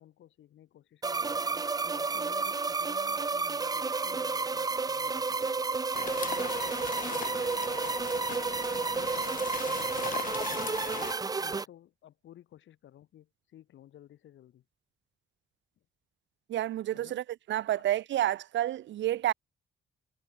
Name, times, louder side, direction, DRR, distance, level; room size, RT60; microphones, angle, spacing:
voice 1, 0.0-1.4 1.9-5.5 6.0-8.7 9.3-10.0 11.3-14.7 16.9-17.2, left 12 dB, 80° left, 5.7 m, -54 dB
sound 1, 1.0-11.7, right 4 dB, 20° right, 0.9 m, -31 dB
sound 2, 5.9-11.1, left 8 dB, 45° left, 1.2 m, -39 dB
voice 2, 16.5-19.3, right 13 dB, 75° right, 0.9 m, -30 dB
wide cardioid pair, 165°, 19 cm